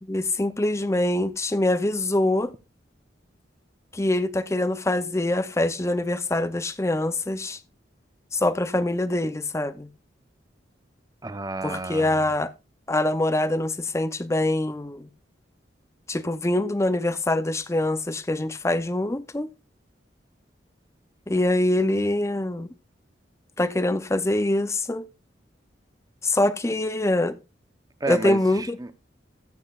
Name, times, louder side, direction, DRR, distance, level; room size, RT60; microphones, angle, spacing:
voice 1, 0.0-2.5 3.9-7.6 8.3-9.9 11.6-12.5 12.9-15.1 16.1-19.5 21.3-22.7 23.6-25.0 26.2-27.4 28.1-28.8, left 1 dB, 15° left, 0.6 m, -24 dB
voice 2, 11.2-12.2 28.0-29.0, right 2 dB, 20° right, 0.7 m, -31 dB
14.0 x 8.9 x 2.4 m
head